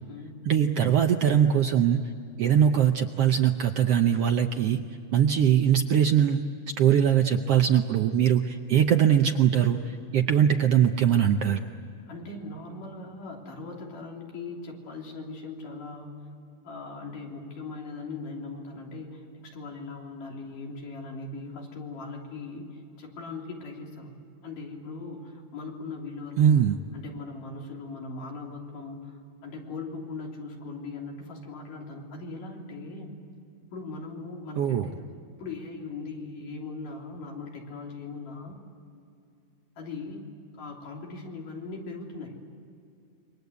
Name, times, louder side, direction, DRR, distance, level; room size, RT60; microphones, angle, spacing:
voice 1, 0.4-2.0 2.4-4.8 5.1-6.4 6.8-11.6 26.4-26.7 34.6-34.9, right 9 dB, 75° right, 5 dB, 1.4 m, -21 dB
voice 2, 12.1-16.2 16.6-24.1 24.4-26.6 26.9-33.1 33.7-35.0 35.4-38.6 39.8-40.2 40.5-42.4, left 3 dB, 75° left, -1 dB, 5.0 m, -39 dB
27.5 x 24.0 x 8.2 m, 2.5 s
omnidirectional pair, 3.8 m